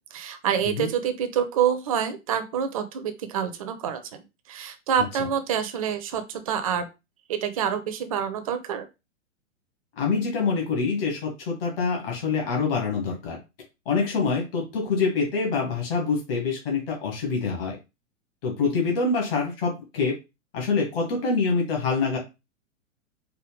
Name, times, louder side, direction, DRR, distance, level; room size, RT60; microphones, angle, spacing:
voice 1, 0.1-6.9 7.3-8.9, right 8 dB, 30° right, 8 dB, 0.4 m, -27 dB
voice 2, 10.0-13.4 13.8-17.8 18.4-20.1 20.5-22.2, left 4 dB, 45° left, 0 dB, 1.6 m, -25 dB
4.7 x 2.2 x 3.4 m, 0.26 s
figure-of-eight pair, 105°, 39 cm